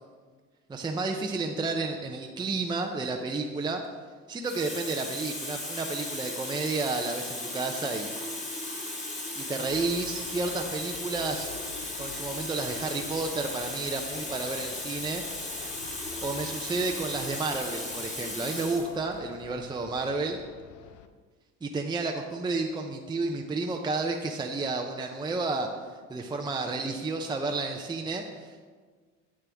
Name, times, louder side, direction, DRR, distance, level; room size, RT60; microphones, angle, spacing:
voice 1, 0.7-3.8 4.3-8.1 9.4-11.5 12.0-15.2 16.2-20.4 21.6-25.7 26.1-28.6, right 3 dB, 15° right, 2 dB, 0.6 m, -31 dB
Water tap faucet, 3.6-3.9 4.4-18.9 19.8-20.0, left 2 dB, 25° left, 1.8 m, -36 dB
sound 1, 9.7-21.1, left 7 dB, 70° left, 0.7 m, -49 dB
9.9 x 7.4 x 3.5 m, 1.5 s
cardioid pair, 110°, 30 cm